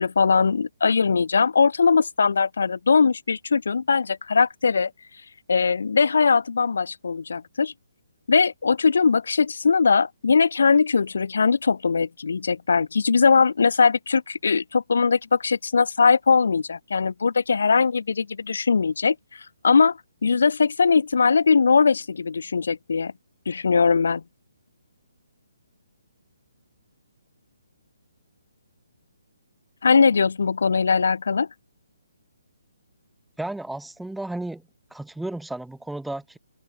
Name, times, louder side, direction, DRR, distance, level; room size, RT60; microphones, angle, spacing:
voice 1, 0.0-4.9 5.5-7.7 8.3-23.1 23.5-24.2 29.8-31.5, left 5 dB, 70° left, 1.3 m, -20 dB
voice 2, 33.4-34.6 34.9-36.4, right 2 dB, ahead, 1.1 m, -33 dB
open air
hypercardioid pair, 160°, 0 cm